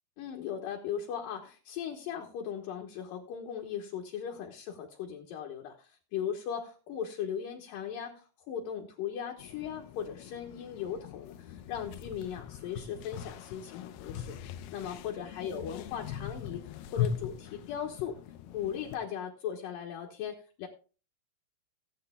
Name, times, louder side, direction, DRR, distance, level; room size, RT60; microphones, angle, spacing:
voice 1, 0.2-18.2 18.5-20.7, left 8 dB, 70° left, 1 dB, 2.6 m, -38 dB
sound 1, 9.4-19.0, left 9 dB, 85° left, 2.6 m, -40 dB
17.5 x 9.2 x 2.2 m, 0.36 s
omnidirectional pair, 4.5 m